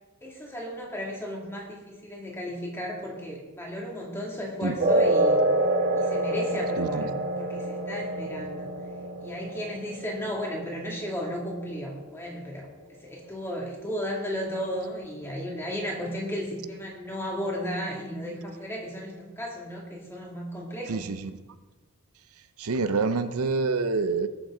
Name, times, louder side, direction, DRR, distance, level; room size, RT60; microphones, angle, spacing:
voice 1, 0.2-5.4 5.9-8.7 9.2-21.0, equal, 10° left, -2 dB, 2.2 m, -34 dB
sound 1, 4.8-11.8, right 1 dB, 40° right, 1.6 m, -27 dB
voice 2, 6.8-7.1 20.9-21.3 22.6-24.3, right 4 dB, 80° right, 11 dB, 0.6 m, -27 dB
18.5 x 7.2 x 3.8 m, 1.3 s
head